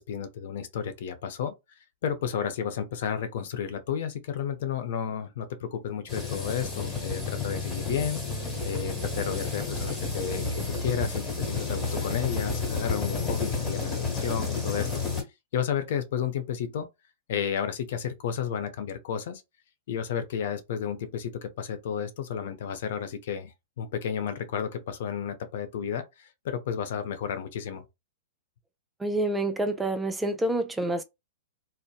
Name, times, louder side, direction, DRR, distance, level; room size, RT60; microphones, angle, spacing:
voice 1, 0.0-1.5 2.0-15.0 15.5-16.9 17.3-19.4 19.9-27.8, left 8 dB, 65° left, 0.6 m, -32 dB
sound 1, 6.1-15.2, left 4 dB, 10° left, 1.3 m, -31 dB
voice 2, 29.0-31.0, right 1 dB, 10° right, 0.3 m, -27 dB
2.8 x 2.0 x 2.3 m
hypercardioid pair, 120°, 0 cm